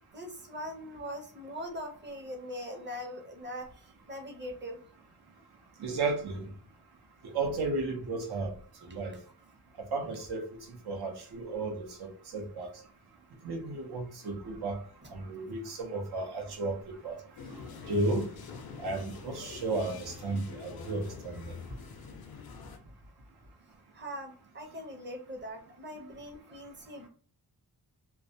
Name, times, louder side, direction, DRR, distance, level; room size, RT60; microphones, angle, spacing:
voice 1, 0.1-4.8 23.9-27.1, equal, 30° right, 3 dB, 0.6 m, -41 dB
voice 2, 5.8-6.5 7.2-8.5 8.9-9.2 9.8-10.6 10.9-12.7 13.4-14.8 15.1-17.2 17.9-18.3 18.8-21.4, right 3 dB, 85° right, 1 dB, 0.7 m, -33 dB
sound 1, 17.4-22.8, left 5 dB, 70° left, 0.5 m, -46 dB
2.3 x 2.0 x 2.6 m, 0.43 s
wide cardioid pair, 125°, 38 cm